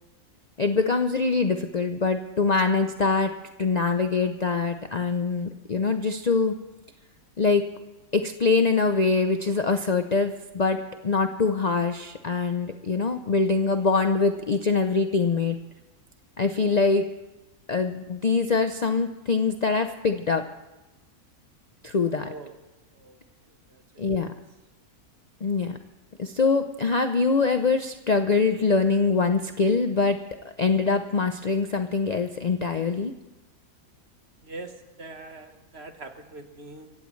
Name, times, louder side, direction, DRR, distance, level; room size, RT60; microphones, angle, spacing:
voice 1, 0.6-3.3 3.6-6.5 7.4-7.7 8.1-10.8 11.0-15.6 16.4-17.1 17.7-20.4 21.8-22.3 24.0-24.3 25.4-25.8 26.2-30.2 30.4-33.1, left 4 dB, 75° left, 7 dB, 0.3 m, -24 dB
voice 2, 34.4-36.9, right 2 dB, 45° right, 6 dB, 1.4 m, -42 dB
26.0 x 15.5 x 3.2 m, 1.0 s
omnidirectional pair, 1.6 m